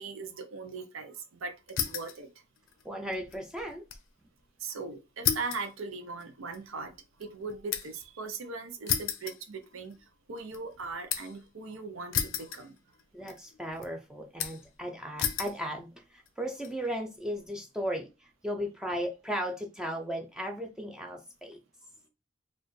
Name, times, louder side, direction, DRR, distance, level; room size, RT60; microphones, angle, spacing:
voice 1, 0.0-2.3 4.6-6.9 7.2-12.7, right 4 dB, 85° right, 0.6 m, -39 dB
sound 1, 1.7-2.2 2.6-4.1 4.4-4.5 5.2-8.1 8.9-10.0 10.4-11.4 12.1-13.0 13.3-13.9 14.4-14.8 15.2-15.6 16.3-16.7, left 9 dB, 70° left, 0.5 m, -34 dB
voice 2, 2.8-3.8 13.1-21.6, equal, 5° right, 0.4 m, -36 dB
4.2 x 2.4 x 3.1 m
head